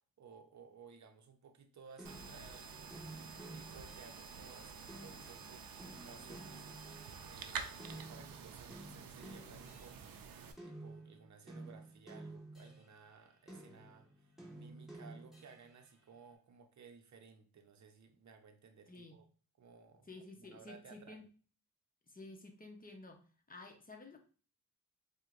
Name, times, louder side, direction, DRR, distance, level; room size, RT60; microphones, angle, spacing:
voice 1, 0.0-3.1 3.5-5.7 6.0-10.2 10.6-19.2 19.6-20.1 20.4-21.2, right 5 dB, 55° right, 6 dB, 0.7 m, -58 dB
sound 1, 2.0-7.3 7.8-13.1 13.5-15.9, right 2 dB, ahead, 1.4 m, -53 dB
sound 2, 2.0-10.5, right 6 dB, 85° right, 0.5 m, -49 dB
voice 2, 20.1-21.3 22.1-24.2, left 2 dB, 25° left, 3 dB, 0.7 m, -52 dB
4.4 x 2.2 x 2.5 m, 0.39 s
cardioid pair, 65°, 34 cm